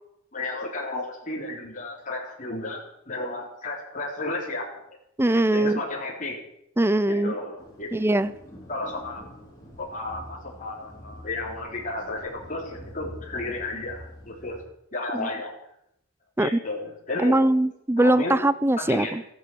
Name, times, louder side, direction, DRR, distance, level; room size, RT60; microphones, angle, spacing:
voice 1, 0.3-4.7 5.5-6.4 7.1-7.9 8.7-9.2 9.8-14.6 14.9-15.5 16.4-17.4 18.0-18.3 18.8-19.3, left 2 dB, 35° left, -2 dB, 3.5 m, -33 dB
voice 2, 5.2-5.8 6.8-7.3 7.9-8.3 15.1-15.3 16.4-16.6 17.2-19.2, right 1 dB, 10° right, 16 dB, 0.5 m, -21 dB
sound 1, 7.6-14.6, left 1 dB, 15° left, 5.2 m, -45 dB
15.0 x 11.0 x 7.8 m, 0.78 s
head